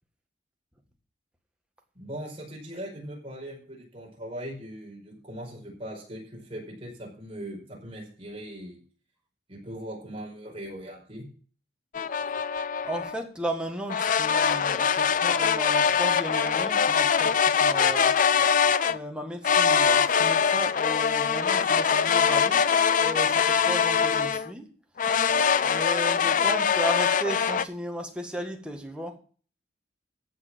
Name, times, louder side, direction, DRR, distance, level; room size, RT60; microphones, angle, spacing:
voice 1, 2.0-8.8 9.5-11.3, right 1 dB, 30° right, 5.1 m, -40 dB
sound 1, 11.9-13.1 13.9-19.0 19.4-24.5 25.0-27.6, left 6 dB, 45° left, 0.5 m, -23 dB
voice 2, 12.8-18.2 18.9-22.7 23.0-24.7 25.6-29.2, right 1 dB, 5° right, 1.7 m, -35 dB
15.0 x 5.1 x 7.8 m
head